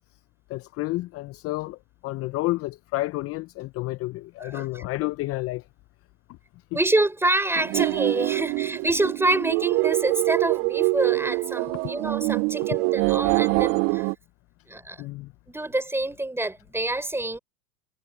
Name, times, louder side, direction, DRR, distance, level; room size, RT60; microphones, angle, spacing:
voice 1, 0.5-5.6 15.0-15.3, left 19 dB, 30° left, 0.7 m, -30 dB
voice 2, 4.4-4.8 6.7-14.1 14.7-15.0 15.5-17.4, right 2 dB, 5° right, 5.1 m, -27 dB
sound 1, 7.6-14.1, right 28 dB, 35° right, 0.5 m, -24 dB
hypercardioid pair, 105°, 45 cm